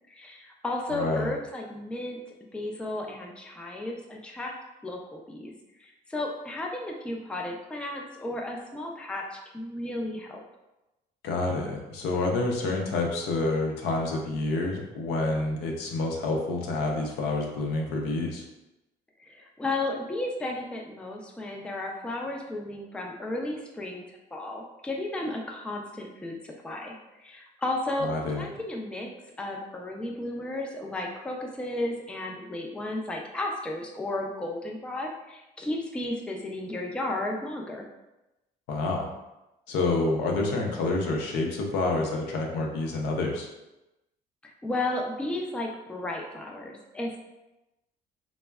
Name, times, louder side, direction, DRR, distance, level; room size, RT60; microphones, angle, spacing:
voice 1, 0.1-2.2 2.5-4.5 4.8-5.5 5.8-10.4 19.3-29.1 29.4-37.8 44.4-47.2, left 2 dB, 5° left, 0 dB, 0.3 m, -34 dB
voice 2, 0.9-1.3 11.2-18.4 28.0-28.5 38.7-39.1 39.7-43.5, left 2 dB, 90° left, 0 dB, 0.6 m, -28 dB
3.3 x 2.1 x 2.2 m, 0.98 s
cardioid pair, 110°, 17 cm